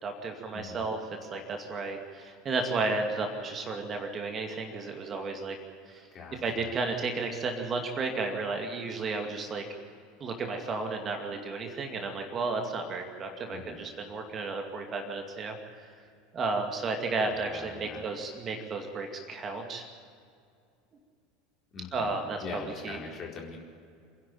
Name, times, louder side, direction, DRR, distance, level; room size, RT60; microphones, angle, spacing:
voice 1, 0.0-5.6 5.9-6.0 6.4-9.6 10.2-15.9 16.3-19.9 21.9-23.0, right 3 dB, 30° right, 4 dB, 2.4 m, -33 dB
voice 2, 6.1-6.7 13.5-13.8 17.2-18.0 21.7-22.1 22.4-23.6, left 5 dB, 35° left, -1 dB, 4.4 m, -42 dB
28.0 x 11.0 x 9.2 m, 2.3 s
figure-of-eight pair, 75°, 0 cm